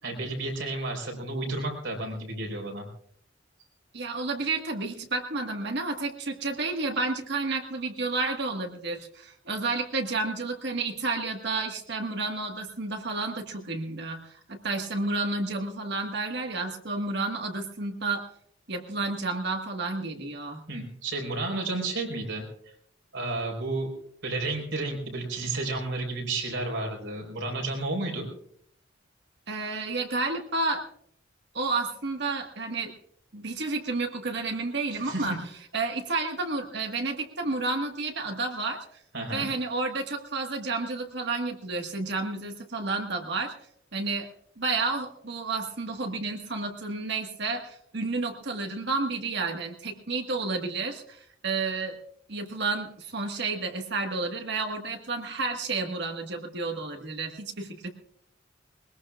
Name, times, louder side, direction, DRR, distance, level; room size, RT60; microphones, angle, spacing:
voice 1, 0.0-2.9 20.7-22.4 23.1-23.9 24.2-28.3 35.0-35.4 39.1-39.5, right 2 dB, 80° right, 1 dB, 4.5 m, -32 dB
voice 2, 3.9-18.2 18.7-20.7 29.5-30.8 31.5-32.9 33.3-35.4 35.7-38.8 39.3-43.5 43.9-44.3 44.6-52.0 52.3-57.9, right 3 dB, 65° right, 4 dB, 1.7 m, -31 dB
21.0 x 21.0 x 2.4 m, 0.67 s
head